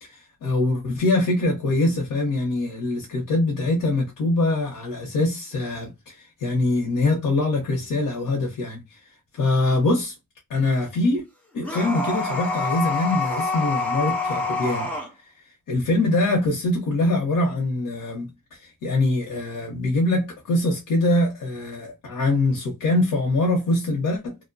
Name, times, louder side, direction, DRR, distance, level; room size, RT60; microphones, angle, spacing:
voice 1, 0.1-9.0 9.3-10.1 10.5-11.2 11.5-14.9 15.2-15.3 15.7-24.4, left 2 dB, 80° left, 0.8 m, -23 dB
sound 1, 11.6-15.1, left 3 dB, 5° left, 0.7 m, -26 dB
2.6 x 2.1 x 2.5 m
wide cardioid pair, 160°, 33 cm